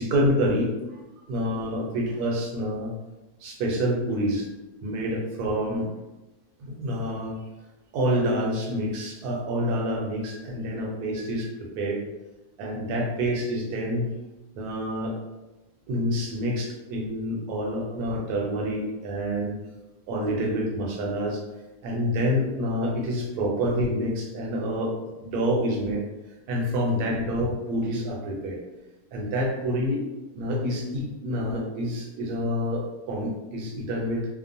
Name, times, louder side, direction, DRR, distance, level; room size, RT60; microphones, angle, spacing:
voice 1, 0.0-1.0 1.3-2.9 3.4-4.5 4.8-5.9 6.6-7.4 7.9-11.5 11.8-12.0 12.6-14.1 14.6-15.1 15.9-19.5 20.1-21.4 21.8-24.9 25.2-26.0 26.5-28.6 29.1-30.0 30.3-34.3, equal, 70° right, -1 dB, 1.1 m, -27 dB
2.9 x 2.1 x 2.5 m, 1.1 s
omnidirectional pair, 1.8 m